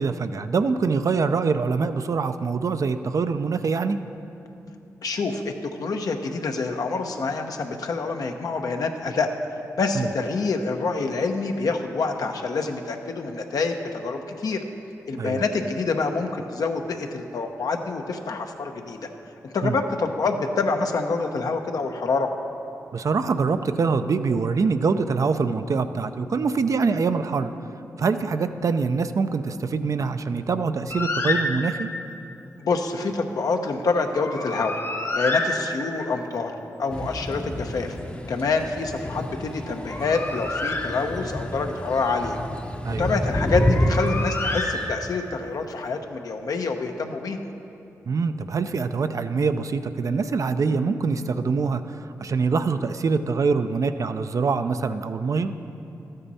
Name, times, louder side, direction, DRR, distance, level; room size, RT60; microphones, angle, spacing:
voice 1, 0.0-4.0 9.9-10.1 15.2-15.4 19.6-19.8 22.9-27.5 28.0-31.9 42.8-43.1 48.1-55.5, right 4 dB, 55° right, 9 dB, 0.5 m, -24 dB
voice 2, 5.0-5.5 5.8-9.3 9.8-14.6 15.1-19.1 19.4-22.3 32.6-34.8 35.1-38.0 38.3-42.4 43.0-47.4, left 4 dB, 70° left, 4 dB, 0.8 m, -26 dB
Bird, 30.9-32.1 34.1-36.2 39.6-41.5 43.5-45.4, left 2 dB, 40° left, 1.1 m, -29 dB
sound 1, 36.9-44.9, left 1 dB, 20° left, 0.7 m, -29 dB
13.0 x 9.0 x 4.2 m, 2.8 s
cardioid pair, 50°, 6 cm